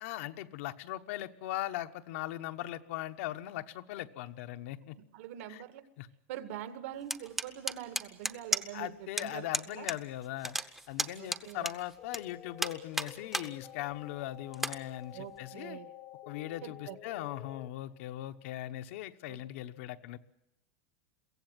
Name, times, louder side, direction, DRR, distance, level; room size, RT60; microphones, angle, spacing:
voice 1, 0.0-5.0 5.5-5.6 6.0-6.1 8.7-10.6 10.9-15.8 16.3-20.2, left 14 dB, 60° left, 9 dB, 1.1 m, -39 dB
voice 2, 5.1-5.8 6.3-9.9 11.2-11.7 15.1-15.9 16.6-17.0 19.3-19.4, right 11 dB, 65° right, 10 dB, 2.0 m, -44 dB
sound 1, 7.1-8.9 9.2-9.3 9.5-10.0 10.2-12.2 12.6-13.5 13.9-14.0 14.5-14.8, right 1 dB, 5° right, 0.8 m, -33 dB
sound 2, 12.0-17.7, left 12 dB, 30° left, 0.9 m, -50 dB
23.0 x 16.0 x 9.1 m, 0.88 s
supercardioid pair, 165°, 8 cm